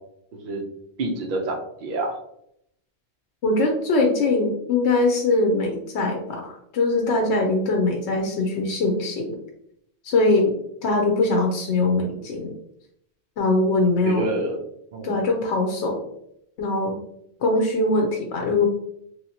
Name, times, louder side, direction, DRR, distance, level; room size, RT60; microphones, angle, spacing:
voice 1, 1.0-2.1 14.0-14.6 14.9-15.2, right 2 dB, 55° right, 2 dB, 0.7 m, -27 dB
voice 2, 3.4-9.4 10.0-10.5 10.8-12.5 13.4-14.3 15.0-16.0 16.6-17.0 17.4-18.7, left 2 dB, 85° left, 1 dB, 0.9 m, -22 dB
3.0 x 2.8 x 2.7 m, 0.74 s
omnidirectional pair, 1.1 m